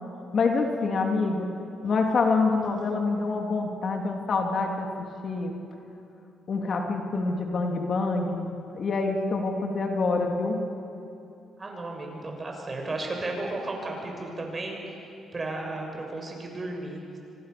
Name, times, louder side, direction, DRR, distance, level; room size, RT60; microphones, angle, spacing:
voice 1, 0.3-1.5 1.8-4.9 5.2-5.5 6.5-8.5 8.7-10.6, left 3 dB, 50° left, 2 dB, 3.2 m, -26 dB
voice 2, 11.6-15.0 15.3-17.2, right 2 dB, 30° right, 1 dB, 6.8 m, -34 dB
25.5 x 25.5 x 7.1 m, 2.7 s
cardioid pair, 80°, 0 cm